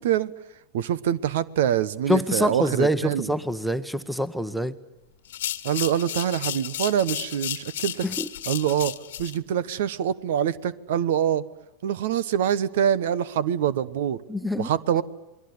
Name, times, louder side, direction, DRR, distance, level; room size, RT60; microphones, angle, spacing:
voice 1, 0.7-3.3 5.6-8.0 8.5-8.9 9.2-11.4 11.8-14.2 14.6-15.0, right 9 dB, 75° right, 18 dB, 1.2 m, -25 dB
voice 2, 2.1-4.8 8.0-8.3 14.3-14.7, equal, ahead, 15 dB, 1.2 m, -25 dB
sound 1, 5.2-9.4, left 12 dB, 80° left, 1.4 m, -33 dB
28.0 x 21.5 x 9.7 m, 0.98 s
supercardioid pair, 125°, 0 cm